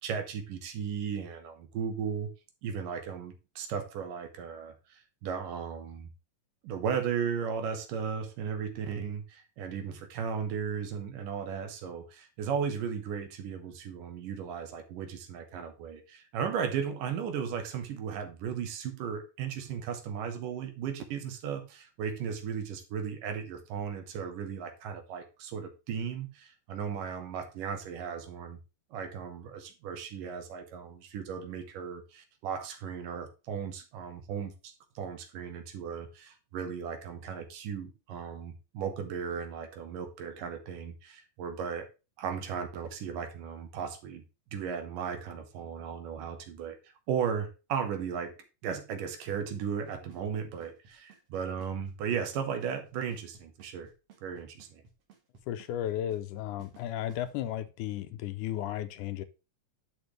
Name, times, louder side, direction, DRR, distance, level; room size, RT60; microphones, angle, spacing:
voice 1, 0.0-2.3 2.6-6.1 6.6-28.6 28.9-41.9 42.2-44.2 44.5-48.4 48.6-53.9 54.2-54.8, right 7 dB, 80° right, 2.8 m, -36 dB
Drum kit / Snare drum / Bass drum, 49.3-57.3, right 6 dB, 55° right, 2.5 m, -57 dB
voice 2, 55.5-59.2, left 12 dB, 80° left, 2.1 m, -34 dB
10.5 x 6.6 x 3.2 m
omnidirectional pair, 3.8 m